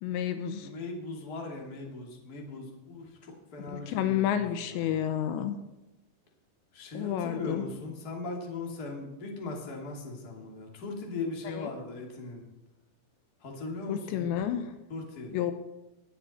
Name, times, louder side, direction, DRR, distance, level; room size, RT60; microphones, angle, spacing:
voice 1, 0.0-0.7 3.6-5.6 6.9-7.7 11.4-11.7 13.9-14.7 15.3-15.5, left 10 dB, 80° left, 8 dB, 3.0 m, -30 dB
voice 2, 0.6-5.0 6.7-12.4 13.4-14.3 14.9-15.3, left 3 dB, 30° left, 0 dB, 2.1 m, -39 dB
20.0 x 9.1 x 4.3 m, 0.99 s
omnidirectional pair, 5.3 m